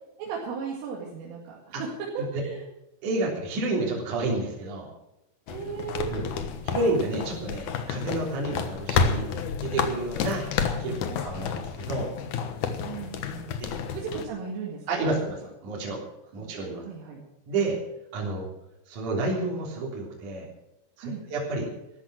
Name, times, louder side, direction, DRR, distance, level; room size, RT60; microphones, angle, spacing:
voice 1, 0.2-1.7 2.1-2.6 5.5-6.1 11.1-11.2 12.7-13.6 13.9-14.9 16.4-16.5 16.8-17.2 21.0-21.2, right 6 dB, 90° right, -2 dB, 4.8 m, -36 dB
voice 2, 3.0-4.9 6.1-6.3 6.6-9.3 9.6-10.4 10.8-12.1 13.6-13.7 14.9-16.0 16.3-16.8 17.5-17.8 18.1-18.5 18.9-20.5 21.0-21.7, right 2 dB, 45° right, -2 dB, 4.5 m, -30 dB
sound 1, 5.5-14.3, left 6 dB, 90° left, 1.7 m, -30 dB
14.5 x 12.5 x 6.3 m, 0.89 s
omnidirectional pair, 5.6 m